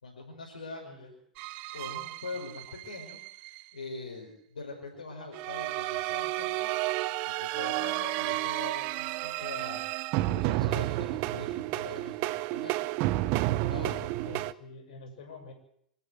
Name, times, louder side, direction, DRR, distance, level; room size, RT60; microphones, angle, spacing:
voice 1, 0.0-1.1 1.7-6.7 7.4-12.8 13.7-14.0, left 3 dB, 80° left, 0 dB, 5.3 m, -43 dB
sound 1, 1.4-3.6 5.3-14.5, right 18 dB, 45° right, 0.8 m, -31 dB
voice 2, 14.0-15.5, left 2 dB, 60° left, 6 dB, 7.0 m, -47 dB
26.5 x 13.0 x 8.0 m, 0.70 s
figure-of-eight pair, 100°, 4 cm